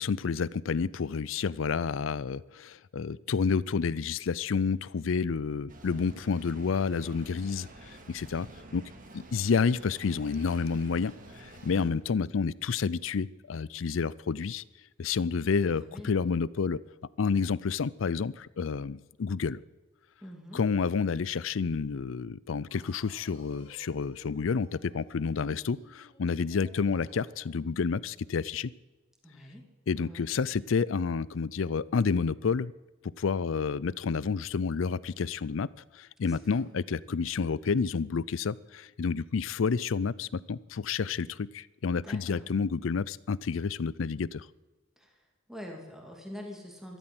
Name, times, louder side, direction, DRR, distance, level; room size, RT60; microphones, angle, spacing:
voice 1, 0.0-8.5 8.7-8.8 9.1-14.6 15.0-16.8 17.2-19.6 20.5-28.7 29.9-32.7 33.2-35.7 35.9-44.5, left 5 dB, 80° left, 21 dB, 0.5 m, -29 dB
sound 1, 5.7-11.9, right 2 dB, 45° right, 2.2 m, -50 dB
voice 2, 15.6-16.1 20.2-20.6 29.2-29.6 29.9-30.3 36.3-36.7 42.0-42.5 45.0-45.2 45.5-47.0, left 1 dB, ahead, 0 dB, 2.7 m, -45 dB
sound 2, 22.7-27.6, left 1 dB, 30° left, 3.8 m, -58 dB
13.0 x 12.5 x 7.8 m, 1.2 s
head